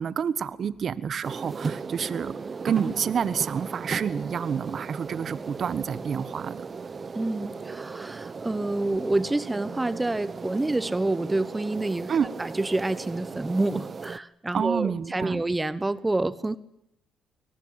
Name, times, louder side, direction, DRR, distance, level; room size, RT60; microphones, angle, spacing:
voice 1, 0.0-2.3 2.6-6.7 12.1-12.3 14.5-15.4, right 7 dB, 55° right, 17 dB, 1.3 m, -28 dB
sound 1, 1.2-14.2, right 5 dB, 35° right, 0.9 m, -37 dB
voice 2, 7.1-12.1 12.4-16.6, right 2 dB, 15° right, 17 dB, 1.1 m, -28 dB
23.0 x 19.0 x 8.9 m, 0.79 s
cardioid pair, 90°, 0 cm